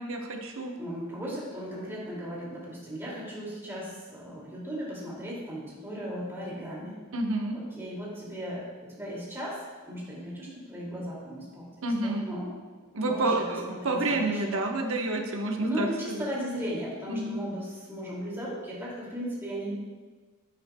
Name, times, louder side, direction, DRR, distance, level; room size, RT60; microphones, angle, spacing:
voice 1, 0.0-0.7 7.1-7.6 11.8-12.2 12.9-16.2 17.1-17.4, right 2 dB, 60° right, 2 dB, 1.1 m, -29 dB
voice 2, 0.8-7.0 7.5-12.5 13.0-14.4 15.6-19.7, equal, 10° right, -6 dB, 2.4 m, -36 dB
10.5 x 8.8 x 2.3 m, 1.4 s
head